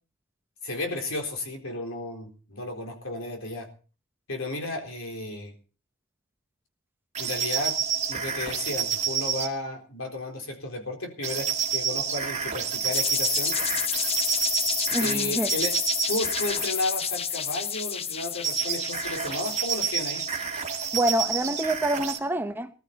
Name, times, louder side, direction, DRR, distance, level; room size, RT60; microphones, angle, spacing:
voice 1, 0.6-3.7 4.3-5.5 7.2-7.8 8.1-13.6 15.0-15.8 16.1-20.2, left 2 dB, 70° left, 4.2 m, -33 dB
sound 1, 7.1-9.5 11.2-15.1 15.5-16.7 18.4-22.2, right 8 dB, 35° right, 2.2 m, -29 dB
sound 2, 12.9-20.7, left 8 dB, 30° left, 0.7 m, -30 dB
voice 2, 14.9-15.5 20.9-22.7, right 1 dB, 10° right, 0.8 m, -26 dB
20.0 x 13.0 x 4.2 m
head